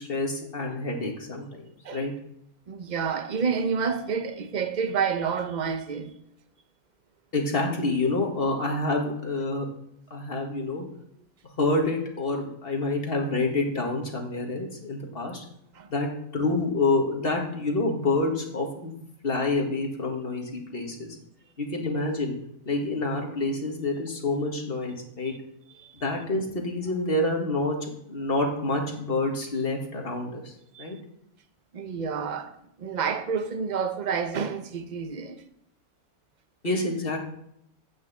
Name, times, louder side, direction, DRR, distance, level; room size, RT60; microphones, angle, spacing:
voice 1, 0.0-2.1 7.3-9.7 10.1-10.8 11.6-15.4 15.9-18.9 19.2-21.2 21.6-22.4 22.7-25.3 26.0-27.8 28.1-30.5 30.8-31.0 36.6-37.2, left 2 dB, 40° left, 2.1 m, -27 dB
voice 2, 2.7-6.2 15.7-15.9 25.3-25.4 25.8-26.0 30.7-30.9 31.7-32.5 32.8-35.4, right 6 dB, 35° right, 0.8 m, -29 dB
9.1 x 6.2 x 7.5 m
omnidirectional pair, 1.6 m